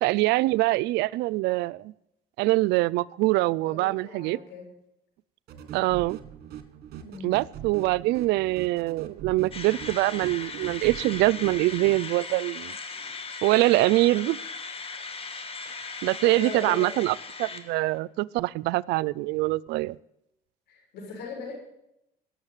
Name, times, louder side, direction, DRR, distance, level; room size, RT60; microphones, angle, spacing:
voice 1, 0.0-1.9 2.4-4.4 5.7-6.2 7.2-12.8 13.4-14.4 16.0-20.0, right 19 dB, 90° right, 21 dB, 0.4 m, -24 dB
voice 2, 3.4-4.7 7.0-7.3 16.2-16.9 20.7-21.5, left 4 dB, 80° left, 1 dB, 6.7 m, -39 dB
sound 1, 5.5-12.0, right 10 dB, 65° right, 1.8 m, -42 dB
sound 2, 9.5-18.0, left 4 dB, 35° left, 1.8 m, -38 dB
17.5 x 7.2 x 9.0 m, 0.82 s
cardioid pair, 110°, 17 cm